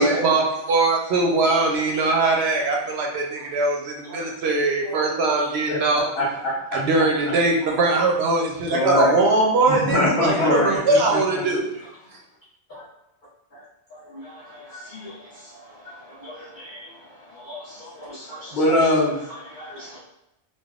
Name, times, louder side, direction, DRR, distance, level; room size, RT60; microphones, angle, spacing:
voice 1, 0.0-6.0 6.7-11.7, right 3 dB, 70° right, 0 dB, 0.8 m, -21 dB
voice 2, 5.7-6.9 8.7-9.1 9.7-11.4 18.3-19.2, left 1 dB, 70° left, -7 dB, 1.4 m, -23 dB
voice 3, 13.9-18.9 19.3-20.0, right 1 dB, 45° left, -10 dB, 0.9 m, -36 dB
3.4 x 2.2 x 2.3 m, 0.86 s
omnidirectional pair, 1.2 m